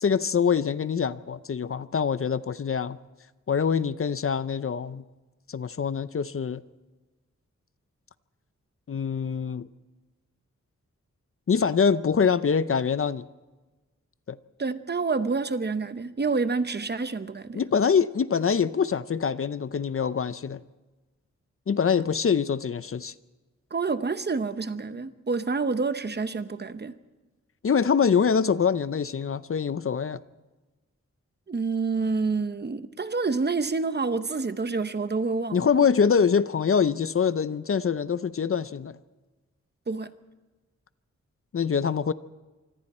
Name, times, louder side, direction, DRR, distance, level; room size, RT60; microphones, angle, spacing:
voice 1, 0.0-3.0 3.5-5.0 5.5-6.6 8.9-9.7 11.5-13.3 14.3-14.4 17.5-20.6 21.7-23.1 27.6-30.2 35.5-39.0 41.5-42.1, left 6 dB, 50° left, 0.6 m, -24 dB
voice 2, 14.6-17.6 23.7-27.0 31.5-35.8 39.9-40.1, right 4 dB, 35° right, 0.9 m, -28 dB
25.5 x 25.0 x 4.3 m
wide cardioid pair, 145°, 29 cm